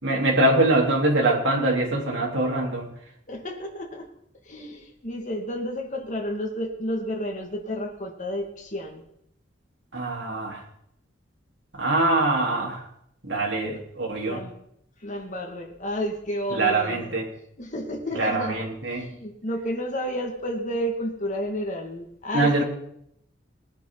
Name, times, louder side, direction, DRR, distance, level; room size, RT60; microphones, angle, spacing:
voice 1, 0.0-2.9 9.9-10.6 11.7-12.8 13.2-14.4 16.6-17.3 18.2-19.0 22.3-22.6, right 2 dB, 70° right, -2 dB, 3.9 m, -23 dB
voice 2, 3.3-4.1 4.5-9.0 13.6-13.8 14.2-14.5 15.0-17.2 17.6-22.6, equal, 40° left, 1 dB, 2.2 m, -31 dB
19.5 x 10.5 x 4.0 m, 0.72 s
head